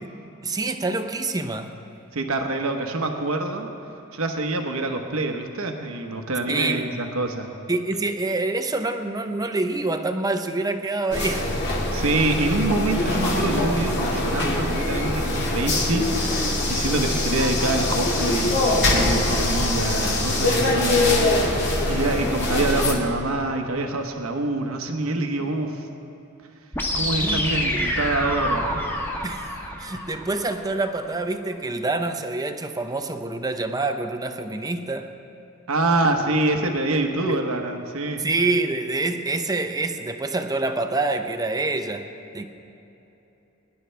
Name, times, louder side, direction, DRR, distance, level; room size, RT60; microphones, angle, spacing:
voice 1, 0.4-1.7 6.5-6.9 7.7-11.5 27.2-27.9 29.2-35.1 37.3-37.4 38.2-42.1 42.3-42.4, right 2 dB, 20° right, 7 dB, 0.7 m, -26 dB
voice 2, 2.1-3.7 4.1-7.5 11.9-25.8 26.9-28.7 35.7-38.2, right 2 dB, 80° right, 4 dB, 1.1 m, -26 dB
sound 1, 11.1-22.9, left 2 dB, 55° left, 2.2 m, -23 dB
sound 2, 26.7-30.7, left 1 dB, 10° left, 1.2 m, -27 dB
22.5 x 10.5 x 3.4 m, 2.9 s
head